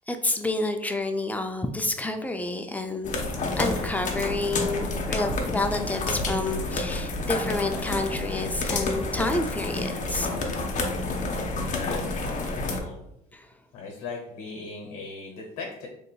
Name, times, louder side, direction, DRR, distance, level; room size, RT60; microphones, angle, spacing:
voice 1, 0.1-3.1 3.5-10.3 13.3-13.5, left 2 dB, 10° left, 6 dB, 0.4 m, -29 dB
sound 1, 3.0-12.8, left 2 dB, 40° left, 0.8 m, -29 dB
voice 2, 11.5-13.0 13.7-15.9, left 4 dB, 80° left, 0 dB, 0.8 m, -39 dB
3.8 x 3.3 x 2.2 m, 0.83 s
supercardioid pair, 80°, 19 cm